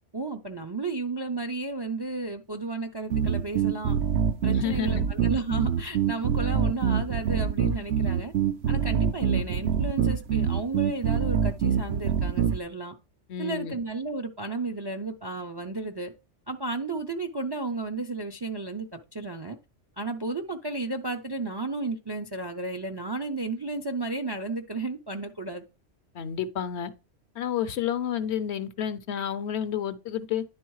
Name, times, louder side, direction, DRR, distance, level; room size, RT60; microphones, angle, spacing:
voice 1, 0.1-4.0 4.4-8.3 8.7-12.9 13.4-16.1 16.5-19.6 20.0-25.6, right 3 dB, 35° right, 0.4 m, -33 dB
sound 1, 3.1-12.6, right 7 dB, 65° right, 0.8 m, -25 dB
voice 2, 4.5-5.1 13.3-13.8 26.1-26.9 27.4-30.4, left 9 dB, 65° left, 0.9 m, -30 dB
10.5 x 3.5 x 4.7 m
omnidirectional pair, 1.2 m